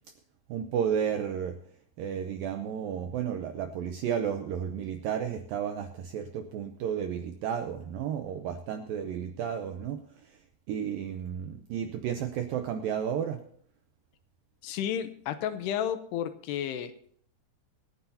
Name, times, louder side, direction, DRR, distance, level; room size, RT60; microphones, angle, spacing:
voice 1, 0.5-1.6 2.0-10.0 10.7-13.4, right 8 dB, 85° right, 6 dB, 2.0 m, -32 dB
voice 2, 14.6-16.9, left 9 dB, 80° left, 10 dB, 2.7 m, -32 dB
26.5 x 9.6 x 2.8 m, 0.63 s
omnidirectional pair, 5.0 m